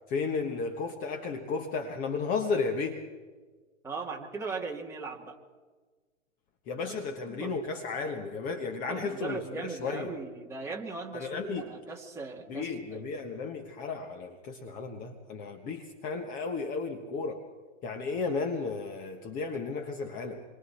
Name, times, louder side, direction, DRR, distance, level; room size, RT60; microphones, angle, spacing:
voice 1, 0.1-3.0 6.7-10.1 11.1-11.7 12.5-17.4 17.8-20.4, left 4 dB, 20° left, 1.2 m, -34 dB
voice 2, 3.8-5.4 6.9-7.0 7.3-7.6 8.9-13.0, right 4 dB, 5° right, 2.3 m, -39 dB
27.5 x 23.0 x 4.3 m
hypercardioid pair, 145°, 39 cm